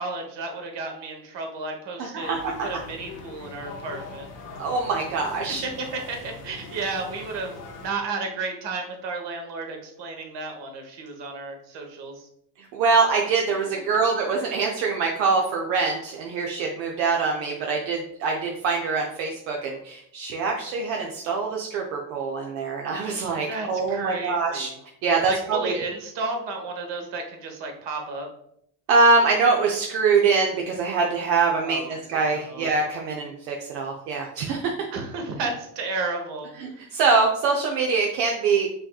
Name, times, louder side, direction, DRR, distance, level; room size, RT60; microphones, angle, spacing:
voice 1, 0.0-4.3 5.6-12.3 23.5-24.8 25.2-28.3 31.6-32.7 34.9-36.9, right 3 dB, 60° right, 3 dB, 1.2 m, -33 dB
voice 2, 2.0-2.5 4.6-5.6 12.6-24.7 25.0-25.7 28.9-34.7 36.6-38.7, right 4 dB, 80° right, 0 dB, 0.7 m, -24 dB
sound 1, 2.2-7.9, left 4 dB, 80° left, 0.9 m, -41 dB
5.5 x 2.8 x 2.3 m, 0.72 s
hypercardioid pair, 60°, 48 cm